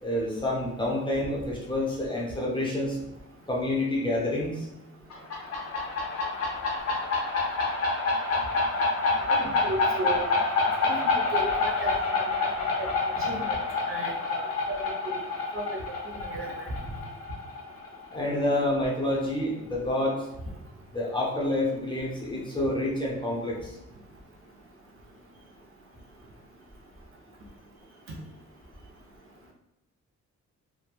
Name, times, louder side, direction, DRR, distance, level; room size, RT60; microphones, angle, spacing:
voice 1, 0.0-3.0 3.5-4.6 18.1-20.1 20.9-23.5, left 1 dB, 15° left, -4 dB, 0.5 m, -28 dB
sound 1, 5.1-18.5, left 3 dB, 60° left, 0.6 m, -28 dB
voice 2, 9.3-10.2 10.8-10.9 11.3-11.9 12.4-12.5 12.8-12.9 13.3-13.6 13.9-15.1 15.5-15.7 16.1-16.7, right 2 dB, 45° right, -1 dB, 0.5 m, -34 dB
2.9 x 2.1 x 2.3 m, 0.85 s
wide cardioid pair, 155°, 29 cm